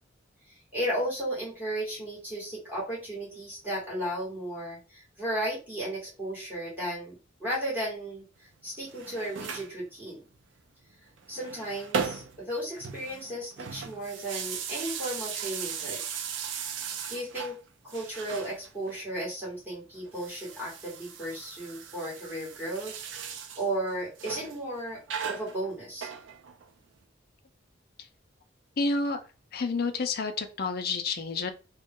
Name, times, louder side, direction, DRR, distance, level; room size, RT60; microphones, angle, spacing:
voice 1, 0.5-7.1 7.4-8.2 8.6-10.2 11.3-16.0 17.1-17.6 17.8-23.0 23.3-25.0 25.3-26.1, right 1 dB, 10° right, -6 dB, 1.8 m, -34 dB
sound 1, 8.8-9.7 11.2-12.5 12.8-17.6 17.9-19.0 20.0-23.7 24.2-24.6 25.1-26.7, right 6 dB, 70° right, 0.5 m, -37 dB
voice 2, 28.8-29.2 29.5-31.5, left 3 dB, 55° left, 7 dB, 0.5 m, -29 dB
3.0 x 2.2 x 3.6 m, 0.32 s
head